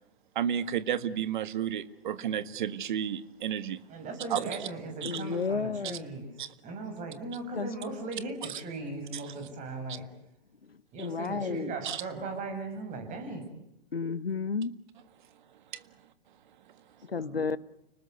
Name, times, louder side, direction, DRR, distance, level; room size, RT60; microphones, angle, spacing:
voice 1, 0.3-3.8 4.3-4.7 5.0-5.2 6.4-6.5 9.1-9.2 11.8-12.0, right 9 dB, 55° right, 14 dB, 1.8 m, -32 dB
voice 2, 3.9-6.3 6.6-10.0 10.9-13.4 17.1-17.4, right 3 dB, 25° right, 6 dB, 7.7 m, -38 dB
voice 3, 5.0-6.1 7.5-7.7 10.6-11.7 13.9-14.8 17.0-17.6, left 5 dB, 85° left, 18 dB, 1.0 m, -32 dB
30.0 x 20.0 x 8.1 m, 0.83 s
figure-of-eight pair, 115°, 29 cm